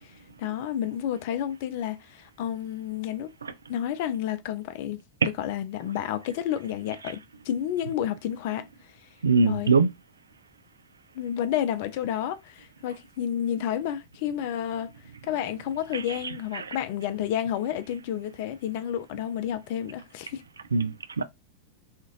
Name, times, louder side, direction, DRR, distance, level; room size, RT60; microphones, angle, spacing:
voice 1, 0.4-3.3 3.7-5.0 5.4-8.7 9.4-9.7 11.1-14.9 15.3-20.4, left 10 dB, 50° left, 0.4 m, -30 dB
voice 2, 9.2-9.9 15.9-16.0 16.5-16.6 20.7-21.2, right 4 dB, 75° right, 0.3 m, -22 dB
2.5 x 2.4 x 3.0 m
figure-of-eight pair, 90°, 0 cm